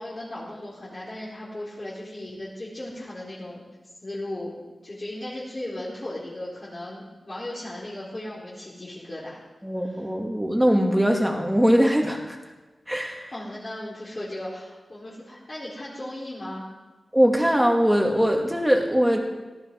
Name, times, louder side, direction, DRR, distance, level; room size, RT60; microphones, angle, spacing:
voice 1, 0.0-3.6 4.0-4.5 4.8-9.4 9.8-10.0 13.3-16.6, left 1 dB, 35° left, -9 dB, 4.5 m, -36 dB
voice 2, 9.6-12.4 12.9-13.3 17.1-19.2, equal, 5° right, 1 dB, 2.4 m, -21 dB
18.0 x 14.0 x 4.8 m, 1.2 s
wide cardioid pair, 120°, 0 cm